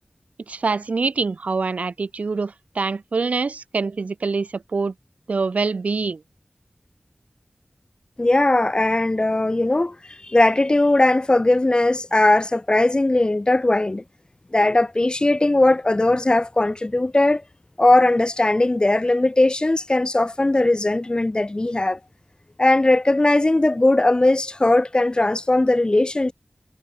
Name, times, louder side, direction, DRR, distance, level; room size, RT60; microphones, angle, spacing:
voice 1, 0.5-4.9 5.3-6.2, right 4 dB, 85° right, 0.4 m, -25 dB
voice 2, 8.2-14.0 14.5-17.4 17.8-22.0 22.6-26.3, left 2 dB, 40° left, 1.2 m, -19 dB
wide cardioid pair, 40°, 2 cm